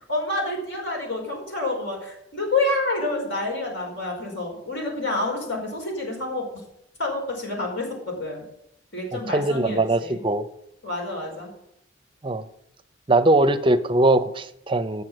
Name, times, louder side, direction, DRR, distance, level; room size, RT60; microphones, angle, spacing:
voice 1, 0.1-6.6 7.0-8.4 8.9-10.2 10.8-11.5, left 2 dB, 65° left, -1 dB, 4.8 m, -28 dB
voice 2, 9.1-10.4 12.2-12.5 13.1-15.0, right 2 dB, 25° right, 10 dB, 0.6 m, -21 dB
8.9 x 6.9 x 7.9 m, 0.76 s
head